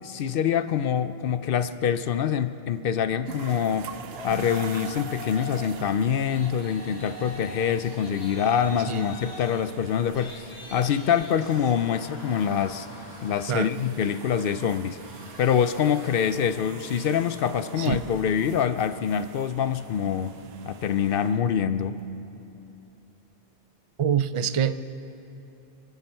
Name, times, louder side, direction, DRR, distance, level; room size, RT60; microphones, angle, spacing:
voice 1, 0.0-3.9 4.2-12.9 13.2-15.0 15.4-20.4 20.6-22.0, left 8 dB, 65° left, 12 dB, 0.7 m, -25 dB
sound 1, 3.3-22.1, right 7 dB, 75° right, 0.9 m, -45 dB
Yell, 4.1-5.8 6.1-16.6, left 2 dB, 85° left, 1.8 m, -44 dB
voice 2, 24.0-24.8, right 8 dB, 50° right, 13 dB, 0.4 m, -25 dB
29.5 x 9.8 x 4.5 m, 2.9 s
omnidirectional pair, 1.1 m